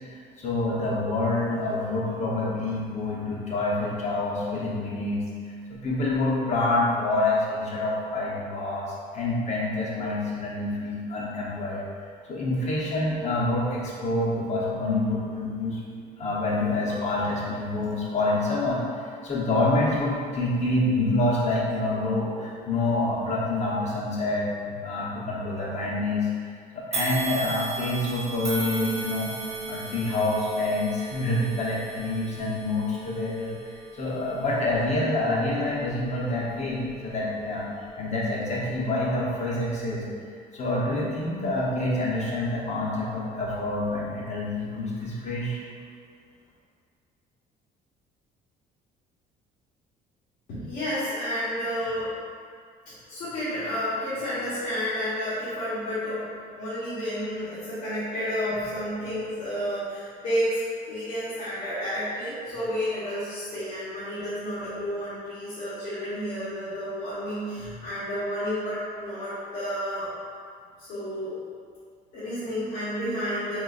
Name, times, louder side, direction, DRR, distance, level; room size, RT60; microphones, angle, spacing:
voice 1, 0.1-5.2 5.7-11.8 12.3-15.8 16.2-18.8 19.2-26.3 26.7-29.3 29.6-37.7 38.0-40.1 40.5-45.6, left 2 dB, 45° left, -5 dB, 1.0 m, -27 dB
sound 1, 26.9-36.2 36.7-36.9 37.9-38.0, right 3 dB, 40° right, 0.9 m, -37 dB
voice 2, 50.5-52.1 53.1-56.3 56.6-60.6 60.9-70.1 70.8-71.4 72.1-73.6, equal, 75° left, -13 dB, 1.2 m, -31 dB
3.9 x 3.8 x 2.4 m, 2.1 s
cardioid pair, 110°, 17 cm